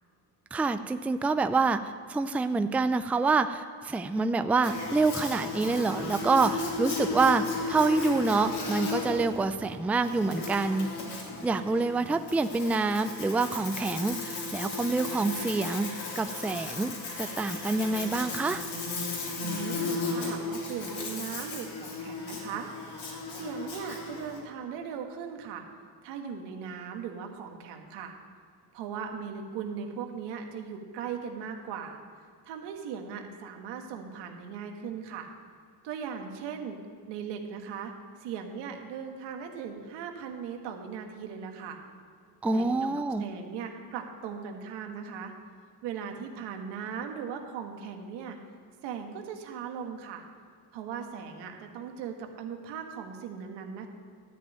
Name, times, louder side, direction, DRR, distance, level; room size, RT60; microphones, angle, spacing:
voice 1, 0.5-18.7 42.4-43.2, right 3 dB, 5° right, 10 dB, 0.4 m, -27 dB
Buzz, 4.6-24.4, left 3 dB, 70° left, 3.1 m, -35 dB
voice 2, 19.4-22.7 23.3-25.6 26.0-28.2 28.7-32.0 32.5-35.3 35.8-36.8 37.1-37.9 38.2-41.8 42.5-42.7 43.2-45.3 45.8-48.4 48.8-50.2 50.7-53.9, right 7 dB, 85° right, 4 dB, 1.6 m, -38 dB
12.5 x 5.3 x 9.0 m, 2.1 s
cardioid pair, 100°, 41 cm